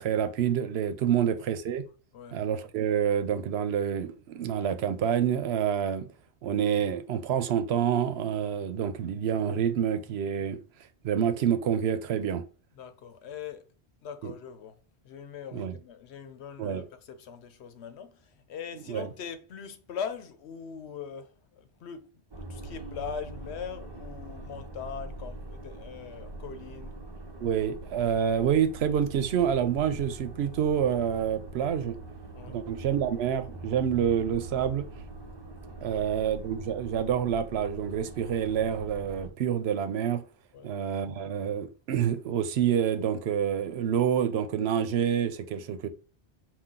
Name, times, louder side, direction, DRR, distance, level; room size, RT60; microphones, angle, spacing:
voice 1, 0.0-1.8 2.3-6.1 6.4-10.6 11.0-12.4 14.2-14.3 15.5-15.7 16.6-16.8 18.9-19.1 27.4-32.0 32.5-34.9 35.8-40.2 40.6-45.9, right 8 dB, 75° right, 0.8 m, -27 dB
voice 2, 12.8-13.6 14.0-14.8 15.0-22.1 22.4-26.9 32.3-32.6 35.9-36.0 40.5-40.7, left 7 dB, 85° left, 1.0 m, -41 dB
sound 1, 22.3-39.3, right 2 dB, 30° right, 0.5 m, -43 dB
5.7 x 2.3 x 3.7 m
omnidirectional pair, 1.1 m